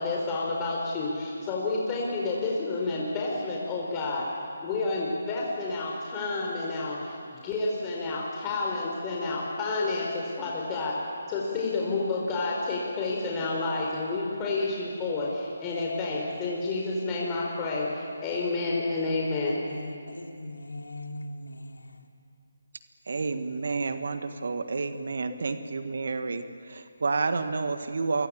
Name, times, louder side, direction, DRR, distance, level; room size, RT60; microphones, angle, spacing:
voice 1, 0.0-4.3 4.6-7.1 7.4-11.0 11.3-19.6, left 3 dB, 20° left, -3 dB, 4.5 m, -30 dB
voice 2, 19.4-22.1, left 1 dB, 80° left, 3 dB, 3.1 m, -41 dB
voice 3, 23.1-28.3, right 4 dB, 60° right, 9 dB, 1.7 m, -30 dB
28.5 x 24.5 x 8.6 m, 2.4 s
figure-of-eight pair, 150°, 0 cm